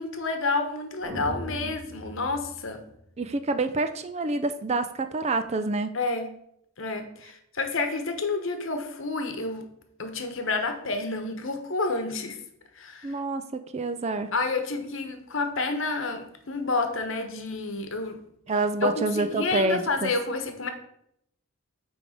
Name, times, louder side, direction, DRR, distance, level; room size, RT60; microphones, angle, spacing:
voice 1, 0.0-2.8 5.9-6.3 6.8-9.6 10.0-12.4 12.7-13.2 14.3-18.2 18.8-20.7, left 3 dB, 65° left, 6 dB, 1.0 m, -29 dB
sound 1, 1.0-3.3, equal, 60° right, 1.2 m, -39 dB
voice 2, 3.2-5.9 13.0-14.3 18.5-20.1, right 3 dB, 30° right, 10 dB, 0.4 m, -27 dB
8.9 x 3.4 x 5.0 m, 0.74 s
head